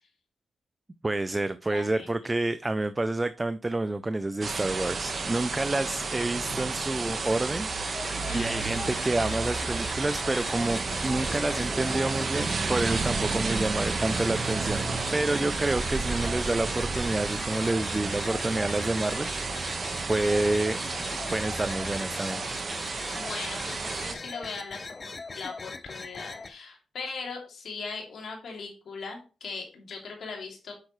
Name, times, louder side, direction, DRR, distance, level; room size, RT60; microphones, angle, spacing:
voice 1, 1.0-14.9 15.1-19.6 20.1-20.8 21.1-22.4, right 2 dB, 20° right, 12 dB, 0.5 m, -29 dB
voice 2, 1.7-2.1 8.2-8.7 23.1-30.7, left 4 dB, 65° left, 1 dB, 2.7 m, -39 dB
sound 1, 4.4-24.1, right 4 dB, 50° right, 1.3 m, -31 dB
sound 2, 7.8-26.5, left 3 dB, 40° left, 0.8 m, -41 dB
sound 3, 11.2-17.5, equal, ahead, 4.3 m, -46 dB
8.4 x 6.3 x 3.2 m, 0.34 s
cardioid pair, 60°, 0 cm